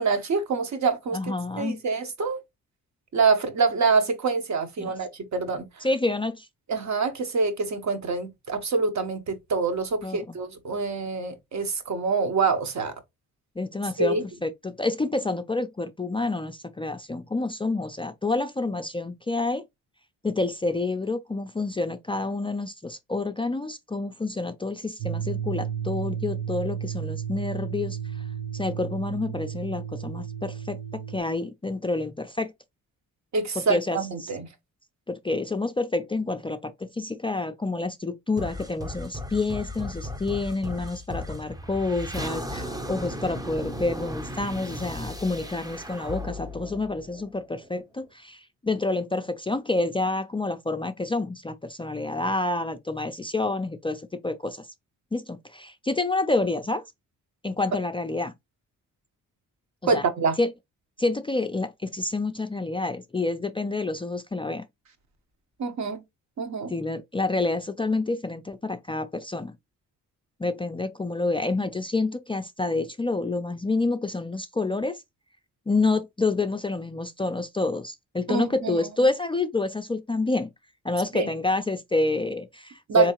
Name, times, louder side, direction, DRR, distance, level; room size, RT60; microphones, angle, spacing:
voice 1, 0.0-2.4 3.1-5.8 6.7-12.9 14.0-14.2 33.3-34.5 59.8-60.4 65.6-66.0 66.4-66.7 78.3-78.9 81.1-81.3 82.9-83.1, right 4 dB, 55° right, 1.1 m, -26 dB
voice 2, 1.1-1.8 4.8-5.0 5.8-6.5 10.0-10.4 13.6-19.6 20.2-28.2 28.5-32.5 33.6-34.3 35.1-54.7 55.1-56.8 57.4-58.3 59.8-60.0 60.4-60.5 61.0-64.6 66.7-69.5 70.4-75.0 75.7-80.5 80.8-83.1, left 3 dB, 15° left, 0.4 m, -28 dB
sound 1, 25.0-31.2, right 8 dB, 75° right, 0.8 m, -33 dB
sound 2, 38.4-47.7, left 1 dB, 10° right, 0.7 m, -36 dB
3.6 x 3.1 x 2.9 m
supercardioid pair, 60°, 35 cm